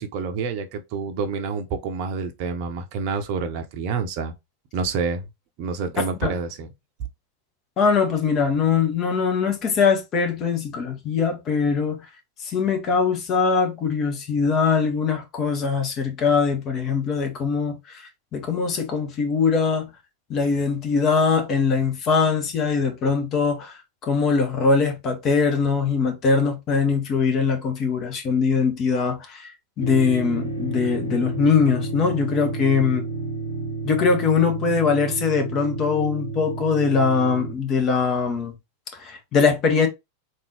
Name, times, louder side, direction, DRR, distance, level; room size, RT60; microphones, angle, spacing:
voice 1, 0.0-4.3 4.7-5.3 5.6-6.7, right 5 dB, 45° right, 0.8 m, -28 dB
voice 2, 7.8-12.1 12.4-19.9 20.3-29.5 29.8-33.0 33.8-38.5 38.9-39.9, left 5 dB, 30° left, 1.2 m, -22 dB
sound 1, 29.8-37.5, right 2 dB, 75° left, 0.7 m, -30 dB
3.7 x 2.7 x 3.3 m
figure-of-eight pair, 90°, 0 cm